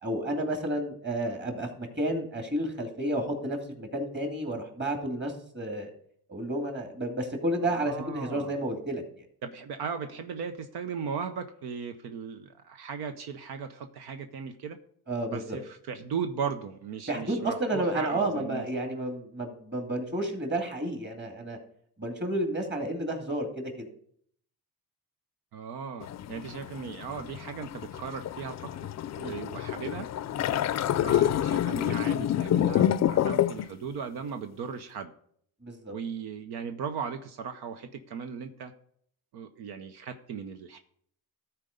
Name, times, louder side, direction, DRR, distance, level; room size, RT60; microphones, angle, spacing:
voice 1, 0.0-5.9 6.3-9.0 15.1-15.6 17.1-21.6 22.0-23.9 29.2-29.4 35.6-35.9, right 1 dB, 30° right, 3 dB, 2.4 m, -31 dB
voice 2, 7.7-8.6 9.4-14.8 15.3-18.7 25.5-28.7 29.2-30.1 31.0-35.1 35.9-38.7 39.3-40.8, right 6 dB, 80° right, 8 dB, 0.8 m, -37 dB
sound 1, 26.0-33.7, left 11 dB, 45° left, 0.4 m, -28 dB
13.0 x 4.5 x 5.1 m, 0.64 s
cardioid pair, 90°, 38 cm